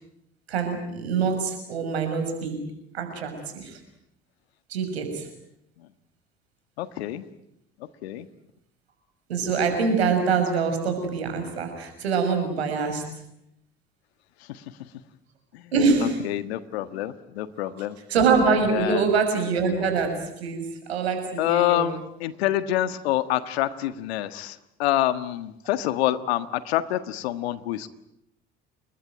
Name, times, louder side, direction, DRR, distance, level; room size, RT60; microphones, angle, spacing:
voice 1, 0.5-2.6 2.9-3.8 4.7-5.3 9.3-13.0 15.7-16.2 18.1-21.9, right 5 dB, 85° right, 6 dB, 6.3 m, -24 dB
voice 2, 6.8-7.2 8.0-8.3 14.5-14.6 15.5-15.6 16.0-18.0 18.7-19.1 21.4-27.9, left 14 dB, 80° left, 13 dB, 1.6 m, -27 dB
30.0 x 21.5 x 9.2 m, 0.80 s
hypercardioid pair, 60°, 31 cm